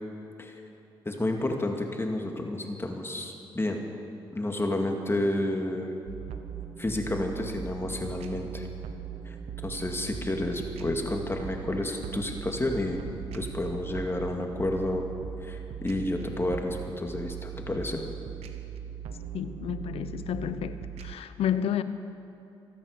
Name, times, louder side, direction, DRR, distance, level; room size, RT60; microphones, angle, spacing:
voice 1, 1.1-3.8 4.3-5.9 6.8-8.7 9.3-9.4 9.6-13.0 13.3-15.1 15.4-18.0, left 1 dB, 25° left, 2.3 m, -30 dB
sound 1, 6.1-21.1, right 8 dB, 85° right, 1.0 m, -39 dB
voice 2, 19.3-21.8, left 9 dB, 75° left, 0.8 m, -31 dB
24.0 x 8.6 x 6.8 m
supercardioid pair, 55°, 10 cm